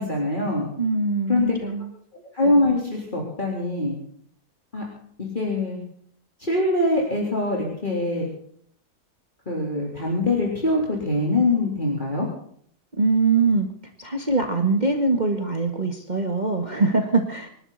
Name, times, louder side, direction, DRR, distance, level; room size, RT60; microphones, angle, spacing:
voice 1, 0.0-0.7 1.3-1.6 2.3-4.0 4.7-4.8 5.2-5.8 6.4-8.3 9.5-12.3, left 2 dB, 30° left, -2 dB, 4.2 m, -23 dB
voice 2, 0.8-1.9 13.0-13.7 14.0-17.5, right 3 dB, 30° right, 4 dB, 2.0 m, -22 dB
27.5 x 12.0 x 4.2 m, 0.62 s
omnidirectional pair, 1.6 m